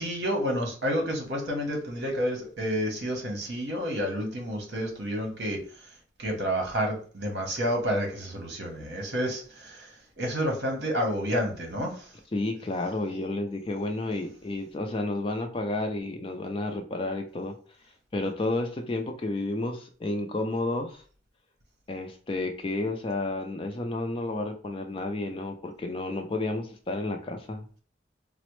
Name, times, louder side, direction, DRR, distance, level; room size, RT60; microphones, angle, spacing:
voice 1, 0.0-5.6 6.2-9.9 10.2-12.1, equal, 55° right, 1 dB, 1.0 m, -29 dB
voice 2, 12.3-17.5 18.1-21.0 21.9-27.7, left 2 dB, 25° left, 5 dB, 0.3 m, -31 dB
4.0 x 2.0 x 3.0 m, 0.42 s
head